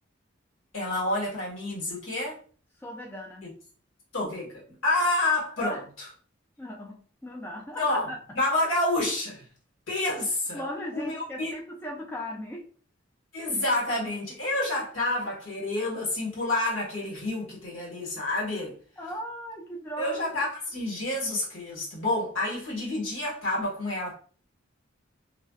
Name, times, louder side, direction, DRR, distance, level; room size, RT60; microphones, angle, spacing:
voice 1, 0.7-2.4 3.4-3.5 4.1-5.8 7.7-8.1 8.3-9.5 9.9-10.6 10.9-11.6 13.3-18.8 20.0-24.1, left 2 dB, 85° left, 1.3 m, -29 dB
voice 2, 2.8-3.5 5.6-5.8 6.6-8.2 10.5-12.7 19.0-20.4, equal, 10° left, 0.3 m, -37 dB
2.4 x 2.4 x 2.2 m
head